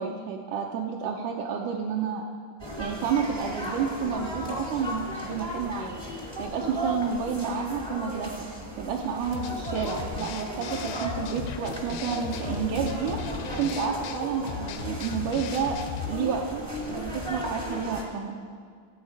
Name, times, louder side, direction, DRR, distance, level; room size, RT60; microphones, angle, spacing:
voice 1, 0.0-2.2 2.8-6.0 6.4-8.5 8.8-13.2 13.5-15.8 16.1-16.6 16.9-18.4, right 6 dB, 75° right, -1 dB, 2.0 m, -30 dB
sound 1, 2.6-18.0, equal, 30° right, 0.4 m, -36 dB
sound 2, 9.3-16.2, left 8 dB, 90° left, 2.3 m, -37 dB
16.5 x 8.1 x 4.7 m, 2.1 s
omnidirectional pair, 4.0 m